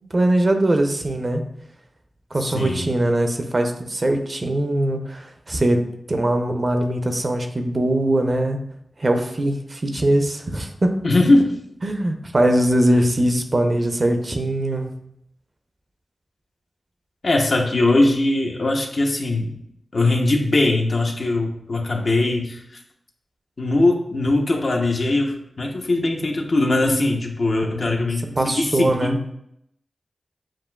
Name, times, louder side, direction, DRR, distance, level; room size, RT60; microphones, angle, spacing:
voice 1, 0.1-1.4 2.3-8.6 9.0-10.9 11.8-14.9 27.6-28.1 28.4-29.2, right 1 dB, 50° right, 5 dB, 0.6 m, -21 dB
voice 2, 2.4-2.9 11.0-11.6 17.2-19.6 19.9-22.8 23.6-29.2, left 2 dB, 65° left, 1 dB, 0.7 m, -20 dB
7.3 x 2.5 x 2.3 m, 0.77 s
cardioid pair, 40°, 0 cm